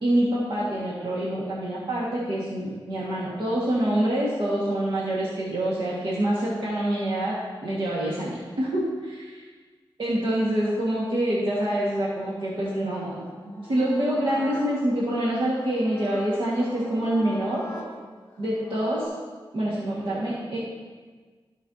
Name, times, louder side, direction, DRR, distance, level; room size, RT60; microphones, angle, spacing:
voice 1, 0.0-7.4 7.6-9.2 10.0-17.6 18.4-19.1 19.5-20.6, right 1 dB, 70° right, -7 dB, 1.8 m, -26 dB
sound 1, 12.2-19.1, left 1 dB, 20° left, 1.4 m, -42 dB
14.5 x 5.7 x 2.8 m, 1.4 s
wide cardioid pair, 115°, 9 cm